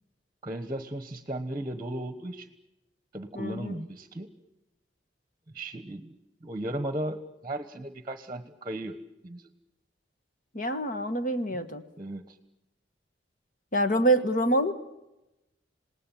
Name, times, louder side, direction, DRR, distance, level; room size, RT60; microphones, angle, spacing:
voice 1, 0.4-2.5 3.1-4.3 5.5-6.2 6.4-9.0 9.2-9.5 11.5-11.6 12.0-12.4, right 1 dB, 25° right, 10 dB, 1.2 m, -36 dB
voice 2, 3.3-3.8 10.5-11.8 13.7-14.7, right 1 dB, 45° left, 9 dB, 1.6 m, -26 dB
27.5 x 19.0 x 9.2 m, 0.97 s
head